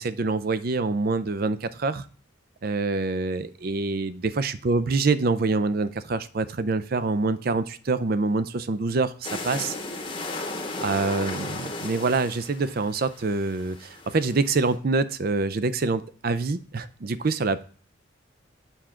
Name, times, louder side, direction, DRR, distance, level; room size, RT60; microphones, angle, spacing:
voice 1, 0.0-2.0 2.6-9.8 10.8-17.6, right 3 dB, 50° right, 13 dB, 0.5 m, -26 dB
sound 1, 9.2-14.8, left 2 dB, 25° left, 0.9 m, -35 dB
7.0 x 5.9 x 3.7 m, 0.42 s
head